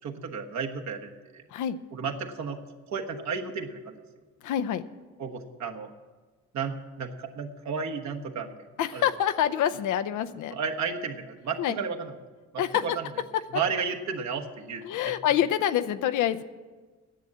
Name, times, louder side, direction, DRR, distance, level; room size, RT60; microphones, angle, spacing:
voice 1, 0.0-1.4 1.9-2.6 2.9-4.0 5.2-5.9 6.5-8.5 8.9-9.0 10.5-12.2 12.5-13.1 13.5-15.1, right 5 dB, 65° right, 2 dB, 1.4 m, -33 dB
voice 2, 4.4-4.8 8.8-10.5 11.6-11.8 12.6-12.8 14.8-16.4, left 10 dB, 80° left, 10 dB, 0.7 m, -26 dB
10.5 x 7.5 x 9.6 m, 1.3 s
cardioid pair, 90°, 30 cm